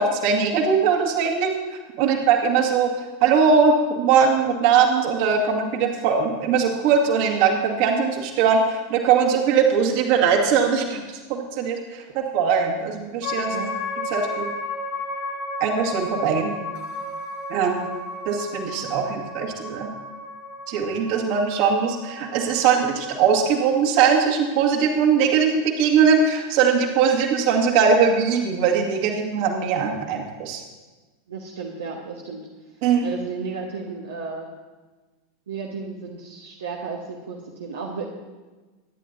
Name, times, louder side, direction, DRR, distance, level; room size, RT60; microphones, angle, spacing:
voice 1, 0.0-1.5 2.0-11.0 11.3-13.6 14.1-14.5 15.6-16.5 17.5-17.8 18.3-19.9 20.7-30.6 32.8-33.1, right 6 dB, 50° right, 1 dB, 1.9 m, -20 dB
voice 2, 2.0-2.3 13.5-13.7 31.3-32.4 33.0-34.5 35.5-38.0, right 5 dB, 65° right, -1 dB, 1.1 m, -33 dB
sound 1, 13.2-23.7, left 2 dB, 50° left, 2.3 m, -33 dB
23.5 x 10.0 x 2.7 m, 1.3 s
figure-of-eight pair, 85°, 0 cm